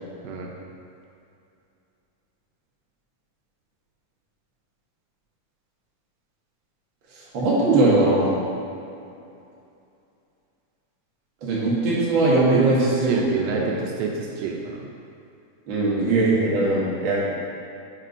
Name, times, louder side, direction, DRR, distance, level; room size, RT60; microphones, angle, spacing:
voice 1, 7.1-8.4 11.4-13.1 13.5-13.7 15.7-17.2, right 2 dB, 55° right, -7 dB, 1.3 m, -20 dB
voice 2, 12.5-14.9, right 5 dB, 80° right, 0 dB, 2.4 m, -26 dB
5.2 x 4.2 x 5.2 m, 2.6 s
omnidirectional pair, 4.1 m